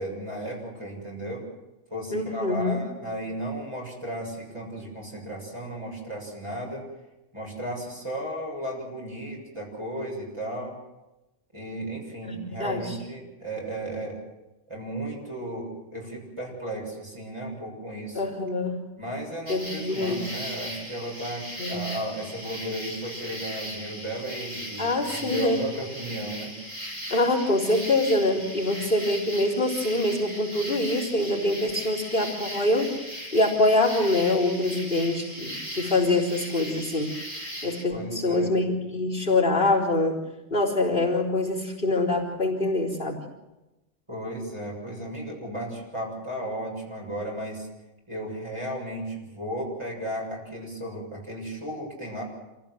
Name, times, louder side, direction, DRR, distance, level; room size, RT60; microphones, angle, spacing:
voice 1, 0.0-1.4 1.9-6.8 7.3-10.8 11.5-14.2 14.7-18.2 19.0-26.5 37.9-38.5 44.1-47.7 48.1-52.2, right 1 dB, 30° right, -2 dB, 6.8 m, -34 dB
voice 2, 2.1-2.8 12.2-13.0 18.1-18.8 19.5-20.2 21.6-21.9 24.8-25.6 27.1-32.9 33.3-37.2 37.6-40.2 40.5-43.2, left 2 dB, 60° left, -4 dB, 4.1 m, -25 dB
sound 1, 19.5-37.8, equal, 55° right, 3.4 m, -38 dB
26.5 x 16.5 x 7.8 m, 1.0 s
omnidirectional pair, 1.0 m